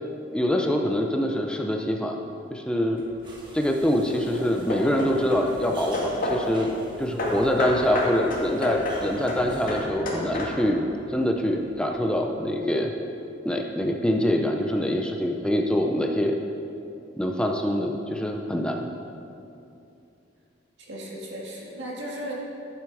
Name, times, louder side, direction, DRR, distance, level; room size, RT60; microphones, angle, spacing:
voice 1, 0.3-2.2 2.5-3.0 3.5-12.9 13.4-16.4 17.2-18.9, equal, 5° left, 2 dB, 0.5 m, -25 dB
Hammer / Wood, 3.0-3.5 4.1-6.5 7.2-10.8, left 1 dB, 50° left, 2.1 m, -30 dB
sound 1, 3.2-9.9, right 2 dB, 25° right, 1.3 m, -46 dB
voice 2, 20.8-22.3, equal, 70° right, -3 dB, 2.2 m, -36 dB
12.0 x 7.4 x 4.9 m, 2.7 s
head